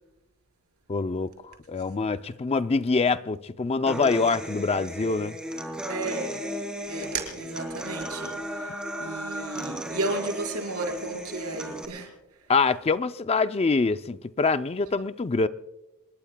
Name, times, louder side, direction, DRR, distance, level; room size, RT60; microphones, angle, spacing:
voice 1, 0.9-1.3 1.7-5.4 12.5-15.5, left 4 dB, 25° left, 0.4 m, -25 dB
Human voice / Acoustic guitar, 3.9-11.8, equal, 5° right, 2.8 m, -35 dB
voice 2, 5.9-6.4 6.9-12.1, right 3 dB, 75° right, 4.9 m, -33 dB
27.0 x 21.0 x 2.3 m
head